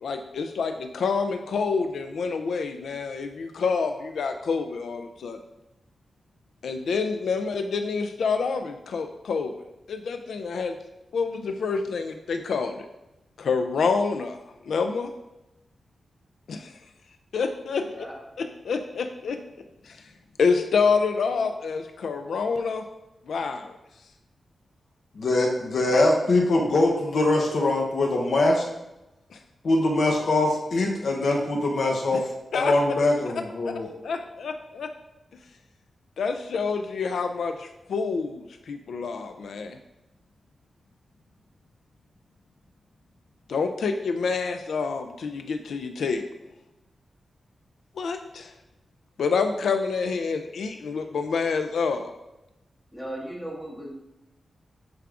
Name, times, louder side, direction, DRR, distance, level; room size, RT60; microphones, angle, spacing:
voice 1, 0.0-5.4 6.6-9.5 9.9-10.8 11.1-12.9 13.4-14.4 14.6-15.1 16.5-16.7 17.3-17.9 18.4-19.4 19.8-20.1 20.4-22.9 23.3-23.8 29.3-29.4 32.1-32.2 32.5-32.7 33.6-33.7 34.0-34.9 36.2-39.8 43.5-46.2 48.0-48.5 49.2-52.1, left 5 dB, 85° left, 7 dB, 0.4 m, -27 dB
voice 2, 17.8-18.2 52.9-53.9, right 1 dB, 10° left, -4 dB, 1.6 m, -37 dB
voice 3, 25.2-28.6 29.6-33.9, left 2 dB, 60° left, 0 dB, 0.8 m, -23 dB
9.2 x 4.7 x 2.4 m, 0.95 s
wide cardioid pair, 165°, 0 cm